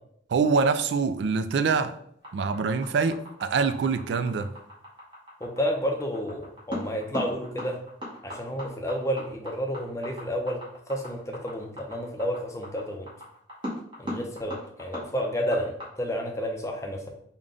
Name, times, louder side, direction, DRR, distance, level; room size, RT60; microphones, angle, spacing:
voice 1, 0.3-1.9 2.3-4.5, right 5 dB, 70° right, 10 dB, 0.3 m, -25 dB
sound 1, 2.2-15.9, left 1 dB, 25° right, 1.1 m, -38 dB
voice 2, 5.4-7.8 8.2-10.6 10.9-13.1 14.0-17.1, equal, 15° left, 2 dB, 0.5 m, -30 dB
3.7 x 2.2 x 3.7 m, 0.68 s
head